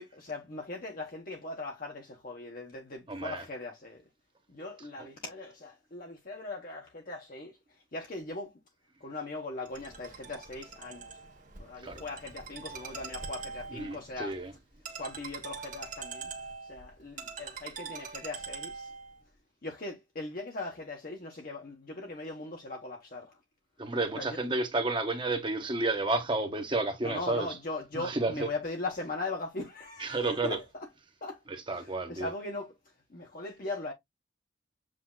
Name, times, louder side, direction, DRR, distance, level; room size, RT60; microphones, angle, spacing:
voice 1, 0.0-4.0 4.5-8.5 9.0-11.2 11.6-14.4 15.0-16.3 16.6-18.9 19.6-23.4 24.1-24.4 27.0-30.9 31.2-31.4 31.7-32.8 33.1-33.9, left 2 dB, 50° left, 1.0 m, -39 dB
voice 2, 3.1-3.4 11.8-12.0 13.7-14.5 23.8-27.5 27.9-28.5 30.0-30.6 31.5-32.3, right 2 dB, 25° right, 1.0 m, -31 dB
Ringtone, 9.7-19.2, right 5 dB, 45° right, 1.5 m, -43 dB
7.6 x 2.7 x 2.3 m
head